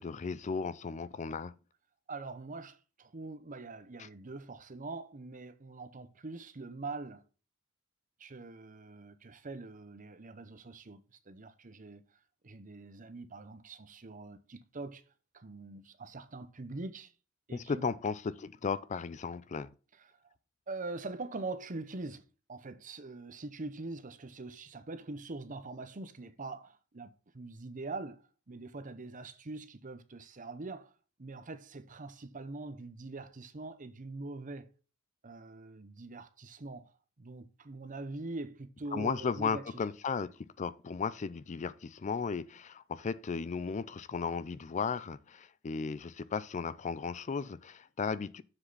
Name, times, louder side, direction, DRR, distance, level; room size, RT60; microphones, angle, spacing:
voice 1, 0.0-1.5 4.0-4.1 17.5-19.7 38.9-48.4, left 5 dB, 35° left, 0.4 m, -35 dB
voice 2, 2.1-7.2 8.2-12.0 12.4-15.0 15.3-17.1 17.5-17.9 20.0-20.1 20.7-22.2 22.5-28.2 28.5-30.9 31.2-34.7 35.2-36.9 37.2-39.8, right 3 dB, 40° right, 0.8 m, -43 dB
7.3 x 6.6 x 4.0 m
head